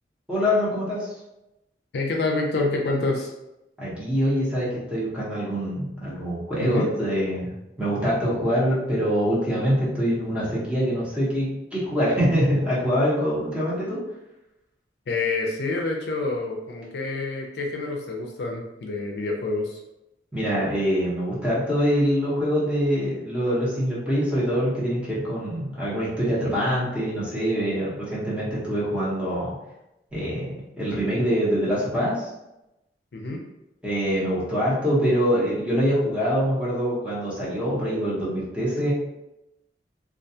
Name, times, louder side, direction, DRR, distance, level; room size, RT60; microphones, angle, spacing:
voice 1, 0.3-1.1 3.8-14.0 20.3-29.5 30.1-30.5 30.8-32.3 33.8-38.9, equal, 5° right, -8 dB, 0.9 m, -24 dB
voice 2, 1.9-3.3 6.6-6.9 15.1-19.8 33.1-33.4, left 3 dB, 65° left, 0 dB, 0.5 m, -27 dB
2.3 x 2.3 x 2.7 m, 0.92 s
head